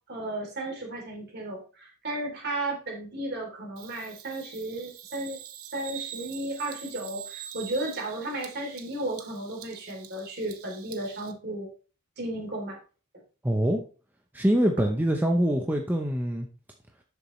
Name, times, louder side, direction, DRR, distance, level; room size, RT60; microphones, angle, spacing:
voice 1, 0.1-5.4 5.7-11.7 12.2-12.8, right 1 dB, 45° right, 1 dB, 3.2 m, -34 dB
Bird vocalization bird call bird song, 3.8-11.3, right 10 dB, 80° right, 1.1 m, -44 dB
voice 2, 13.4-13.8 14.3-16.5, equal, 10° right, 2 dB, 0.8 m, -24 dB
11.5 x 7.0 x 3.2 m, 0.36 s
head